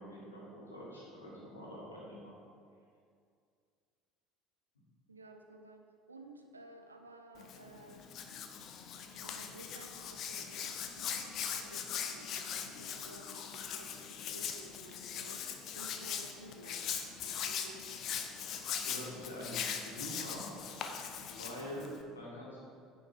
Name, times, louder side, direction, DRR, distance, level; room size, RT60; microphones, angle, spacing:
voice 1, 0.0-2.3 18.8-20.5 21.3-22.6, equal, 85° left, -5 dB, 1.9 m, -45 dB
voice 2, 5.1-8.2 9.1-18.0, right 2 dB, 85° right, 4 dB, 0.6 m, -55 dB
Hands, 7.4-22.0, left 7 dB, 50° left, 0.7 m, -41 dB
9.1 x 5.5 x 4.5 m, 2.3 s
figure-of-eight pair, 65°, 0 cm